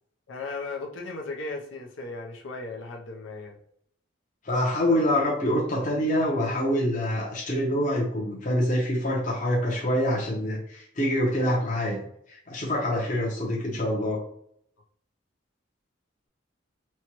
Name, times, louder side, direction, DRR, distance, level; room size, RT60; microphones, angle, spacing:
voice 1, 0.3-3.6 4.9-5.0 12.9-13.0, left 3 dB, 80° left, 0 dB, 0.7 m, -36 dB
voice 2, 4.4-12.0 12.3-14.2, left 1 dB, 45° left, -4 dB, 0.9 m, -26 dB
4.4 x 2.3 x 3.0 m, 0.68 s
head